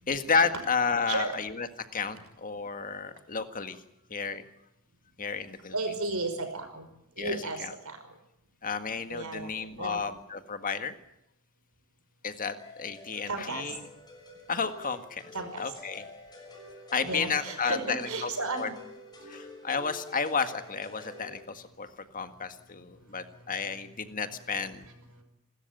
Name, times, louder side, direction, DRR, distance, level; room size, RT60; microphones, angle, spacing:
voice 1, 0.1-1.7 1.9-3.8 4.1-4.4 5.2-5.7 7.2-7.7 8.6-10.9 12.2-13.8 14.5-15.2 15.6-16.1 16.9-18.3 18.6-18.7 19.3-21.9 22.1-24.9, left 5 dB, 40° left, 9 dB, 1.8 m, -32 dB
voice 2, 5.7-6.8 7.2-8.0 9.1-9.5 9.8-10.0 13.3-13.7 15.3-15.7 17.0-18.7 23.4-23.5 25.1-25.2, right 3 dB, 75° right, 7 dB, 5.5 m, -34 dB
sound 1, 12.6-21.4, left 3 dB, 20° left, 6.2 m, -48 dB
28.0 x 13.5 x 9.2 m, 0.84 s
head